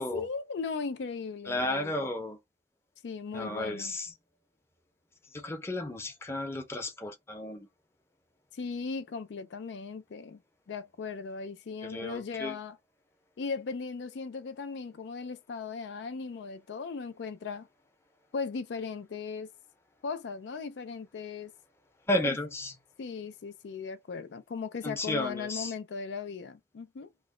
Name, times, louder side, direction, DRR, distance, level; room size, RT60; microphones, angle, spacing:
voice 1, 0.0-2.0 3.0-3.9 8.5-10.4 10.7-12.8 13.4-17.7 18.3-19.5 20.0-21.5 22.2-22.4 23.0-27.1, left 5 dB, 75° left, 0.4 m, -37 dB
voice 2, 1.5-2.4 3.3-4.1 5.3-7.7 11.8-12.6 22.1-22.7 24.8-25.7, left 1 dB, 15° left, 0.6 m, -33 dB
3.0 x 2.1 x 3.6 m
head